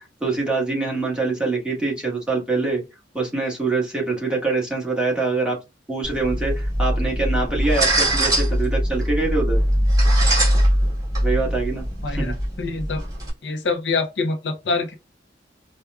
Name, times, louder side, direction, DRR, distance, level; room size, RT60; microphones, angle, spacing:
voice 1, 0.0-2.8 3.1-5.5 5.9-9.6 11.2-12.3, right 3 dB, 5° right, 1.4 m, -24 dB
sound 1, 6.0-13.3, equal, 20° right, 1.6 m, -21 dB
voice 2, 12.0-13.0 13.4-15.0, left 3 dB, 70° left, 0.6 m, -25 dB
4.6 x 2.2 x 2.3 m
head